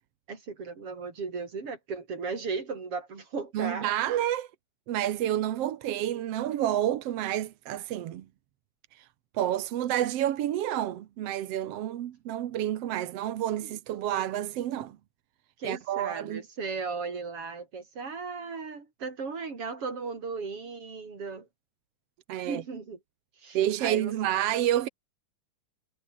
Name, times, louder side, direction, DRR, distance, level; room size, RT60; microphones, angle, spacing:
voice 1, 0.3-3.9 13.6-13.7 15.6-21.5 22.4-23.0 23.4-24.1, right 4 dB, 40° right, 5.0 m, -36 dB
voice 2, 3.5-4.5 4.9-8.2 9.0-9.1 9.3-15.0 15.6-16.4 22.3-22.6 23.5-24.9, right 12 dB, 60° right, 1.7 m, -29 dB
omnidirectional pair, 3.8 m